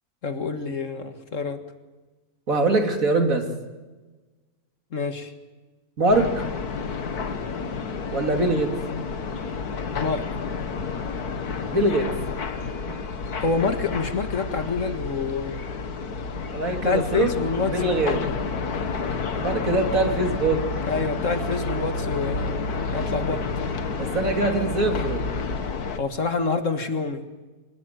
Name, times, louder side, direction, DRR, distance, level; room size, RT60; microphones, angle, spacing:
voice 1, 0.2-1.6 4.9-5.3 10.0-10.3 13.4-15.7 16.8-18.4 20.9-23.5 26.0-27.2, left 4 dB, 55° left, 8 dB, 2.1 m, -27 dB
voice 2, 2.5-3.4 6.0-6.4 8.1-8.7 11.7-12.1 12.9-13.0 16.5-17.3 17.7-18.2 19.4-20.6 24.0-25.2, right 2 dB, 60° right, 4 dB, 3.2 m, -23 dB
sound 1, 6.1-26.0, left 4 dB, 75° left, 2.0 m, -30 dB
24.5 x 21.0 x 9.4 m, 1.2 s
omnidirectional pair, 1.7 m